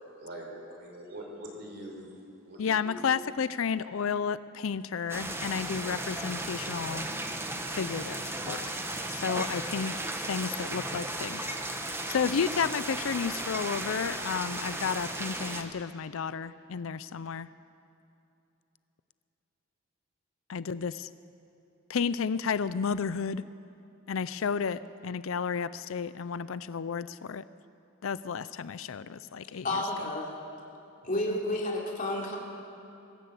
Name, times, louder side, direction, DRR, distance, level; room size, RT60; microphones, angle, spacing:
voice 1, 0.2-2.1 2.4-3.0, right 1 dB, 55° right, 0 dB, 4.5 m, -43 dB
voice 2, 2.6-7.1 7.7-8.8 9.1-10.0 10.3-11.6 11.8-17.5 20.5-21.1 21.9-23.4 24.1-27.4 28.0-29.8, left 6 dB, 75° left, 16 dB, 0.5 m, -32 dB
sound 1, 5.1-15.6, right 1 dB, 10° right, 1.3 m, -35 dB
voice 3, 29.6-30.3 31.0-32.4, left 1 dB, 40° left, -2 dB, 3.2 m, -30 dB
23.0 x 14.0 x 8.2 m, 2.8 s
head